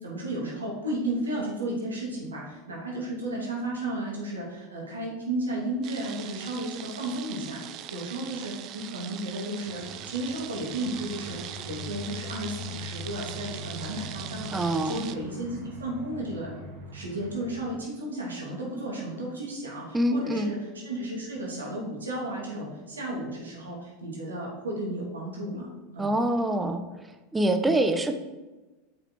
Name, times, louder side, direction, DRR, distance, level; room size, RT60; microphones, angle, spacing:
voice 1, 0.0-16.5 16.9-26.1, right 1 dB, 85° right, -3 dB, 2.6 m, -33 dB
sound 1, 5.8-15.2, right 11 dB, 50° right, 0.5 m, -41 dB
Aircraft, 9.6-17.7, left 1 dB, 70° right, 2.4 m, -42 dB
voice 2, 14.5-15.0 19.9-20.5 26.0-26.8 27.3-28.1, right 1 dB, 10° right, 7 dB, 0.9 m, -25 dB
7.3 x 5.9 x 4.7 m, 1.2 s
hypercardioid pair, 85°, 0 cm